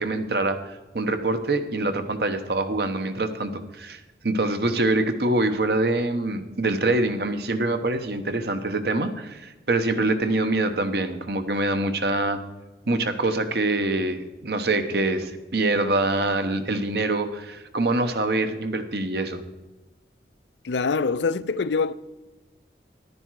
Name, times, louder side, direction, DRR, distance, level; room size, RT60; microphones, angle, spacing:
voice 1, 0.0-12.4 12.9-19.4, right 2 dB, 65° right, 1.0 m, -25 dB
voice 2, 20.6-21.9, left 4 dB, 85° left, 0.5 m, -24 dB
11.5 x 9.8 x 4.7 m
head